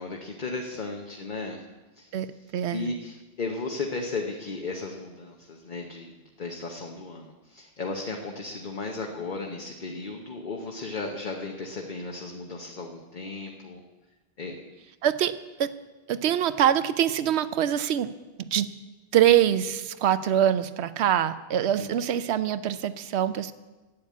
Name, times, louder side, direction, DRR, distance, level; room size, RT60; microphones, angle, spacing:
voice 1, 0.0-1.6 2.0-6.1 6.4-13.8 14.4-14.6 21.8-22.1, left 3 dB, 50° left, 1 dB, 1.1 m, -35 dB
voice 2, 2.5-2.9 15.0-15.7 16.1-18.1 18.5-18.7 19.1-23.5, right 10 dB, 85° right, 14 dB, 0.9 m, -24 dB
11.5 x 8.5 x 8.4 m, 1.2 s
omnidirectional pair, 1.1 m